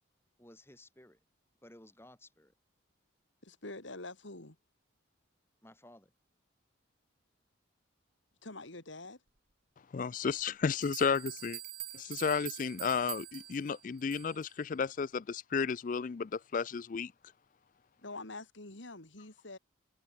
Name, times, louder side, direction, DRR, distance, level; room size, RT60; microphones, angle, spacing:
voice 1, 0.4-1.2 1.6-2.5 5.6-6.1, left 1 dB, 10° left, 5.5 m, -56 dB
voice 2, 3.4-4.6 8.4-9.2 18.0-19.6, left 2 dB, 75° left, 3.5 m, -46 dB
voice 3, 9.9-11.6 11.9-17.1, left 5 dB, 40° left, 0.3 m, -33 dB
sound 1, 10.4-10.5 10.8-14.5, right 16 dB, 50° right, 1.3 m, -45 dB
head